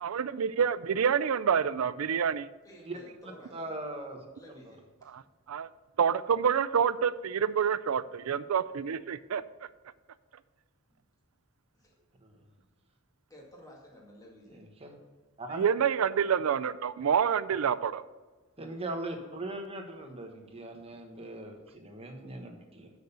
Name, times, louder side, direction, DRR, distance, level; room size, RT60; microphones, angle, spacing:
voice 1, 0.0-2.5 5.1-5.2 5.5-5.7 6.0-9.4 15.6-18.0, right 7 dB, 85° right, 15 dB, 0.4 m, -27 dB
voice 2, 2.6-3.8 4.3-5.1 10.9-11.0 11.7-12.0 13.3-14.7, equal, 15° left, -2 dB, 2.1 m, -53 dB
voice 3, 3.5-4.2 12.2-12.4 14.6-14.9 15.4-15.6 18.6-22.9, right 2 dB, 30° right, 3 dB, 1.2 m, -40 dB
6.9 x 6.5 x 6.8 m, 1.4 s
head